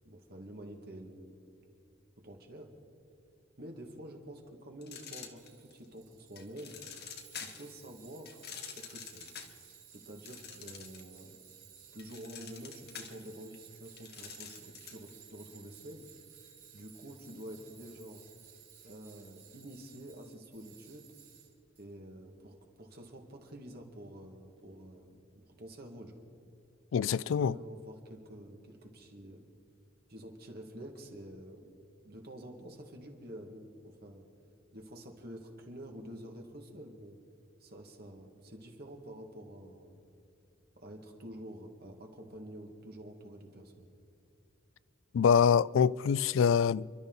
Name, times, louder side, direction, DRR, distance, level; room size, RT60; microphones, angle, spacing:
voice 1, 0.0-1.3 2.2-2.7 3.6-6.8 7.4-8.5 8.8-9.3 9.9-11.4 11.9-16.0 16.7-18.2 18.8-21.1 21.8-25.2 25.6-26.1 27.0-29.5 30.1-31.7 32.0-34.2 34.7-37.2 37.6-40.0 40.8-43.9, right 1 dB, 50° right, 2.1 m, -48 dB
sound 1, 4.8-5.8 6.4-7.7 8.2-11.2 11.5-15.1, left 7 dB, 55° left, 1.4 m, -47 dB
Tools, 5.4-21.8, right 9 dB, 80° right, 5.1 m, -57 dB
voice 2, 26.9-27.5 45.1-47.0, left 7 dB, 70° left, 0.3 m, -25 dB
30.0 x 12.0 x 4.0 m
head